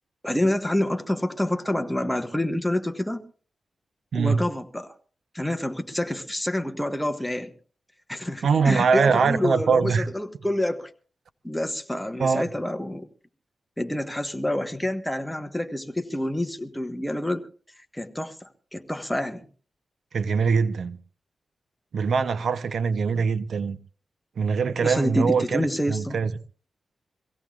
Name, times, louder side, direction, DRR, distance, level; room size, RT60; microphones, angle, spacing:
voice 1, 0.2-3.2 4.1-4.9 5.3-7.5 8.1-10.9 11.4-13.1 13.8-17.5 17.9-19.5 24.8-26.2, left 1 dB, 5° left, 1.2 m, -27 dB
voice 2, 4.1-4.4 8.4-10.1 12.2-12.4 20.1-21.0 21.9-23.8 24.4-26.3, right 5 dB, 70° right, 0.7 m, -23 dB
24.0 x 16.5 x 2.4 m
wide cardioid pair, 95°, 0 cm